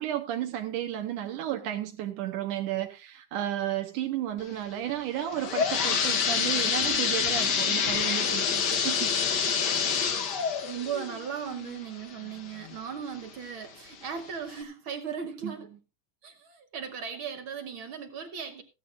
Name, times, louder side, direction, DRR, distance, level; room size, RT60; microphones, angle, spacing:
voice 1, 0.0-9.6 15.4-15.5, right 12 dB, 80° right, 2.5 m, -33 dB
sound 1, 5.1-12.8 13.2-13.3 14.1-14.2 14.6-14.7, left 6 dB, 65° left, 1.0 m, -27 dB
voice 2, 10.6-15.7 16.2-18.6, right 7 dB, 60° right, 1.4 m, -37 dB
15.5 x 13.5 x 2.5 m
omnidirectional pair, 3.6 m